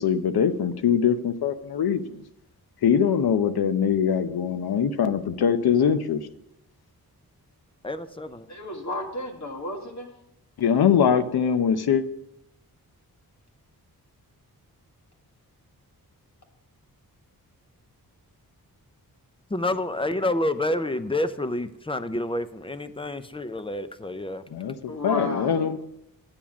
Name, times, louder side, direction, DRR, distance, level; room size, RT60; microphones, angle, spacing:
voice 1, 0.0-2.2 2.8-6.3 10.6-12.0 24.5-25.8, left 7 dB, 80° left, 11 dB, 0.7 m, -22 dB
voice 2, 7.8-8.5 19.5-24.5, left 1 dB, 15° left, 12 dB, 0.5 m, -28 dB
voice 3, 8.5-10.1 24.9-25.8, left 2 dB, 50° left, 3 dB, 1.7 m, -33 dB
8.8 x 7.2 x 6.0 m, 0.83 s
wide cardioid pair, 100°, 37 cm